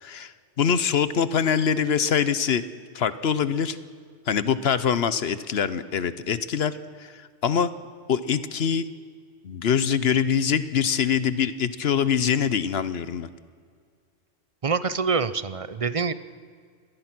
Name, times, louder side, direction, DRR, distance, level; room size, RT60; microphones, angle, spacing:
voice 1, 0.0-2.6 2.9-3.8 4.3-7.7 8.1-8.9 9.4-13.3, left 7 dB, 60° left, 14 dB, 1.0 m, -24 dB
voice 2, 14.6-16.1, right 5 dB, 40° right, 14 dB, 0.5 m, -25 dB
25.5 x 19.0 x 6.1 m, 2.1 s
omnidirectional pair, 1.3 m